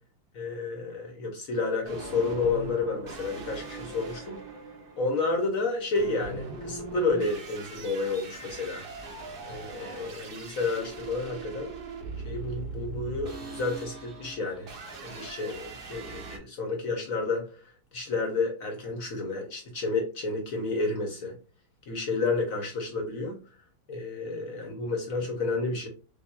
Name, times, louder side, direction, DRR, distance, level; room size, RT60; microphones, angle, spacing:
voice 1, 0.3-4.4 5.0-8.8 9.5-11.7 12.2-14.7 15.0-17.6 17.9-21.3 21.9-23.3 23.9-25.9, left 3 dB, 55° left, 3 dB, 1.0 m, -30 dB
sound 1, 1.8-16.4, right 3 dB, 70° right, 0.5 m, -41 dB
5.2 x 2.3 x 2.2 m, 0.36 s
omnidirectional pair, 2.1 m